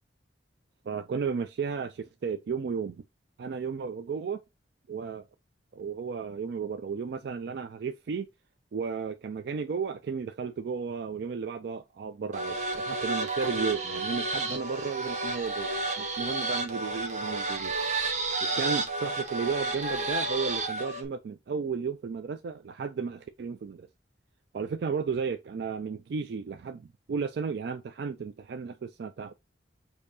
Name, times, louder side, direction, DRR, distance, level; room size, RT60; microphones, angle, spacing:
voice 1, 0.9-3.0 3.4-4.4 4.9-5.3 5.7-8.3 8.7-17.7 18.4-23.9 24.5-29.3, right 5 dB, 60° right, 0.3 m, -34 dB
sound 1, 12.3-21.0, right 2 dB, 40° right, 0.8 m, -31 dB
6.4 x 2.7 x 2.6 m
head